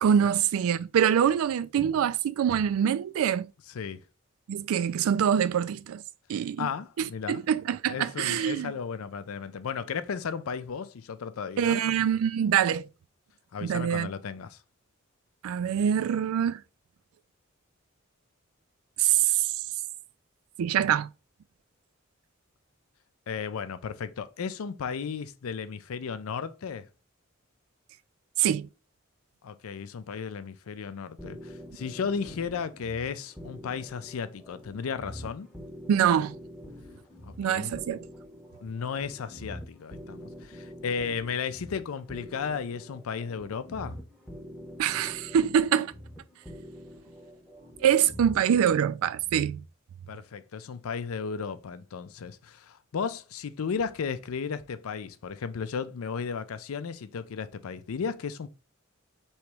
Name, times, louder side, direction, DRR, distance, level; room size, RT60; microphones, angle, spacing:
voice 1, 0.0-3.5 4.5-6.0 6.3-6.7 7.0-8.7 11.6-12.9 13.6-14.1 15.4-16.6 19.0-19.5 20.6-21.1 28.4-28.7 35.9-36.3 37.4-38.1 44.8-45.9 47.8-49.6, right 9 dB, 90° right, 0.3 m, -25 dB
voice 2, 6.6-7.4 7.9-11.8 13.5-14.6 23.3-26.9 29.4-35.5 37.2-37.7 38.6-44.0 50.1-58.5, left 6 dB, 85° left, 0.4 m, -34 dB
sound 1, 31.2-48.6, equal, 5° left, 0.7 m, -45 dB
3.1 x 2.9 x 4.6 m
head